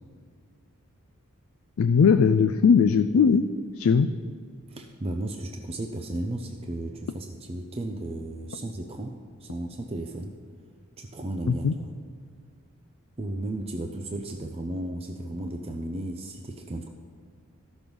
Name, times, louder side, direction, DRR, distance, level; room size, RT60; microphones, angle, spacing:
voice 1, 1.8-3.5 3.8-4.1 11.5-11.7, left 6 dB, 75° left, 8 dB, 0.4 m, -19 dB
voice 2, 4.7-10.4 11.0-11.6 13.2-16.9, right 1 dB, 30° right, 3 dB, 0.5 m, -34 dB
13.5 x 6.2 x 5.3 m, 2.1 s
head